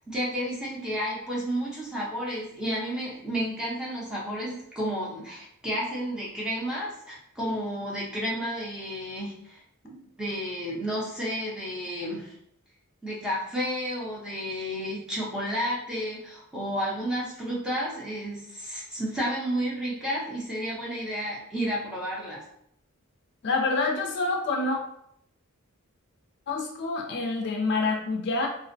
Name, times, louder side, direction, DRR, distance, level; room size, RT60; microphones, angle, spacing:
voice 1, 0.1-12.3 13.0-22.4, equal, 5° right, -6 dB, 0.6 m, -31 dB
voice 2, 23.4-24.8 26.5-28.5, left 3 dB, 55° left, 1 dB, 0.4 m, -27 dB
2.5 x 2.0 x 2.5 m, 0.72 s
head